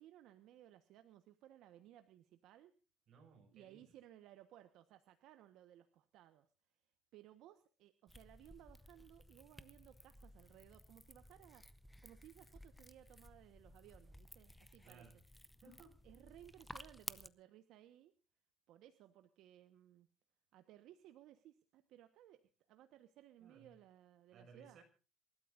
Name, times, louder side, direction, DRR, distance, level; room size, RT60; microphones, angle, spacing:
voice 1, 0.0-2.7 3.5-6.5 7.1-11.7 12.0-15.1 16.0-18.1 18.7-20.1 20.5-24.8, right 12 dB, 70° right, 9 dB, 1.3 m, -61 dB
voice 2, 3.1-3.9 14.8-15.2 15.6-16.0 23.4-23.7 24.3-24.8, right 4 dB, 45° right, 3 dB, 6.2 m, -61 dB
sound 1, 8.1-17.3, left 1 dB, 5° left, 0.7 m, -56 dB
28.0 x 13.0 x 2.6 m, 0.35 s
cardioid pair, 155°, 0 cm